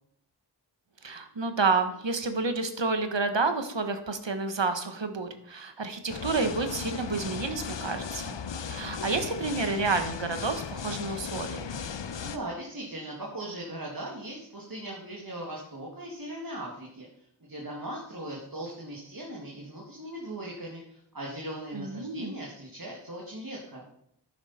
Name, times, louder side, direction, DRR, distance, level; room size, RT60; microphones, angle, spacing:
voice 1, 1.0-8.4 8.7-11.8 21.7-22.4, right 4 dB, 85° right, 7 dB, 1.4 m, -30 dB
sound 1, 6.1-12.4, left 6 dB, 85° left, 0.7 m, -36 dB
voice 2, 12.2-17.1 17.4-23.8, right 1 dB, 55° right, -2 dB, 2.4 m, -39 dB
11.0 x 9.8 x 4.3 m, 0.71 s
wide cardioid pair, 50°, 43 cm